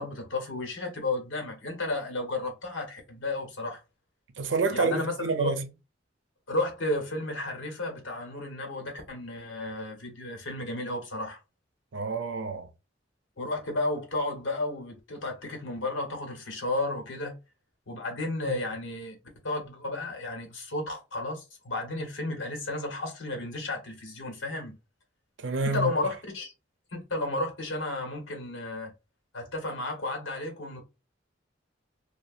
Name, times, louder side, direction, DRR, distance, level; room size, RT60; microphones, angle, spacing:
voice 1, 0.0-3.8 4.7-5.5 6.5-11.4 13.4-17.3 17.9-19.2 19.4-24.7 25.6-26.5 26.9-28.9 29.3-30.8, left 2 dB, 85° left, 1.2 m, -33 dB
voice 2, 4.4-5.7 11.9-12.7 18.5-18.6 25.4-25.9, right 3 dB, 75° right, 0.6 m, -28 dB
2.8 x 2.3 x 2.4 m
head